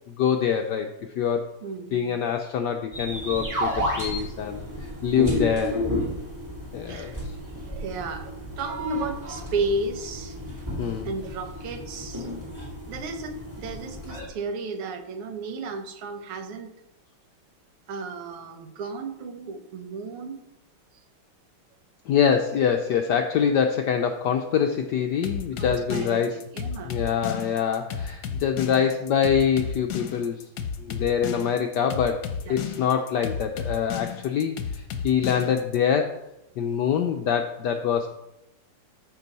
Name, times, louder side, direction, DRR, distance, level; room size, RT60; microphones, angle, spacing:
voice 1, 0.2-0.9 1.2-1.5 1.9-5.8 6.7-7.2 10.8-11.1 22.1-26.3 26.8-30.4 30.8-36.2 36.6-38.1, left 7 dB, 80° left, 6 dB, 0.9 m, -25 dB
voice 2, 1.6-2.2 4.1-4.2 5.3-5.7 6.8-7.2 7.5-10.4 11.0-12.3 12.9-16.7 17.9-20.4 25.6-27.0 32.5-32.6, right 3 dB, 85° right, 7 dB, 1.9 m, -33 dB
sound 1, 2.9-14.3, equal, 10° right, 2.2 m, -32 dB
sound 2, 25.2-35.8, left 7 dB, 60° left, 1.2 m, -33 dB
13.5 x 5.3 x 4.1 m, 0.88 s
omnidirectional pair, 2.4 m